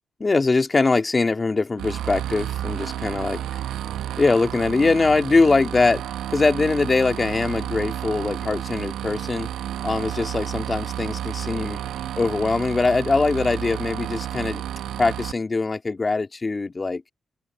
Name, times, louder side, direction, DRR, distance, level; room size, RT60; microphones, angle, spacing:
voice 1, 0.2-3.4 4.2-6.0 6.3-9.5 9.8-11.8 12.1-14.6 15.0-17.0, left 3 dB, 35° left, 2.3 m, -22 dB
sound 1, 1.8-15.3, right 11 dB, 90° right, 0.8 m, -31 dB
supercardioid pair, 55°, 0 cm